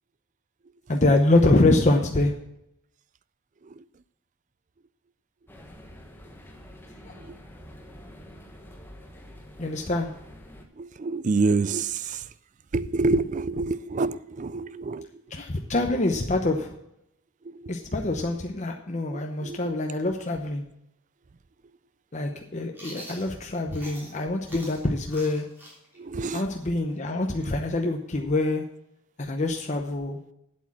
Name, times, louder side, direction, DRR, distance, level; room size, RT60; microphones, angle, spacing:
voice 1, 0.9-2.3 9.6-10.1 15.3-16.7 17.7-20.6 22.1-25.5 26.3-28.6 29.2-30.2, left 2 dB, 30° left, 0.8 m, -25 dB
sound 1, 5.5-10.6, equal, 10° left, 1.2 m, -47 dB
voice 2, 10.8-12.2 12.7-15.1 19.1-19.6 26.0-26.4, right 3 dB, 35° right, 0.3 m, -27 dB
Chewing mastication, 22.7-24.2 24.5-28.1, equal, 10° right, 3.3 m, -45 dB
8.5 x 8.2 x 7.3 m
head